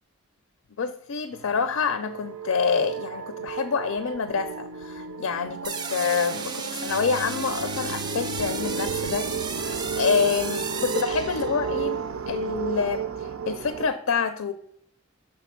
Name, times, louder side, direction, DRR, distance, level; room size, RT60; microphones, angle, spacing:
voice 1, 0.8-9.3 9.5-14.5, left 5 dB, 90° left, 11 dB, 0.5 m, -27 dB
sound 1, 1.3-13.9, right 6 dB, 90° right, 0.5 m, -33 dB
sound 2, 5.6-11.8, right 5 dB, 20° right, 0.3 m, -34 dB
6.0 x 3.8 x 5.7 m, 0.69 s
head